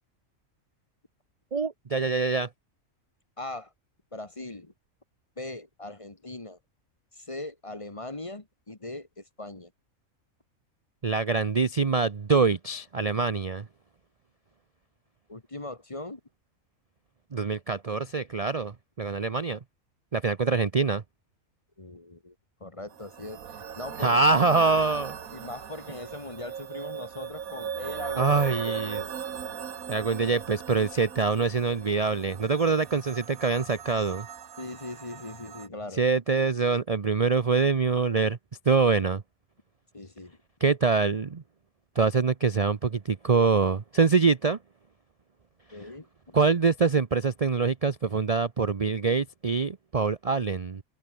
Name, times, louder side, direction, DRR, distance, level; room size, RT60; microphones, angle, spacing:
voice 1, 1.5-2.5 11.0-13.7 17.3-19.6 20.1-21.0 24.0-25.2 28.2-29.0 29.9-34.3 36.0-38.4 38.7-39.2 40.6-41.4 41.9-44.6 46.3-50.8, right 4 dB, 35° right, 0.7 m, -24 dB
voice 2, 3.4-3.7 4.1-4.7 5.4-6.6 7.1-9.7 15.3-16.2 21.8-22.3 22.6-23.4 23.8-24.4 25.3-29.1 34.6-36.0 39.9-40.4 45.7-46.3, left 2 dB, 25° left, 1.6 m, -40 dB
sound 1, 22.9-35.7, right 8 dB, 85° right, 1.7 m, -39 dB
omnidirectional pair, 1.5 m